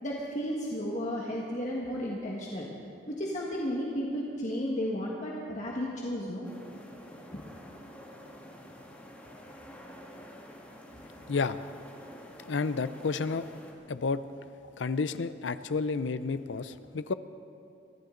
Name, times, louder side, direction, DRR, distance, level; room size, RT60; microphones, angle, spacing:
voice 1, 0.0-2.7 3.1-6.4 7.3-7.4, equal, 40° left, -4 dB, 1.6 m, -33 dB
sound 1, 6.4-13.7, equal, 10° left, 1.8 m, -49 dB
voice 2, 12.5-13.5 13.9-14.2 14.8-17.1, left 4 dB, 80° left, 13 dB, 0.6 m, -30 dB
24.0 x 13.5 x 3.9 m, 2.5 s
head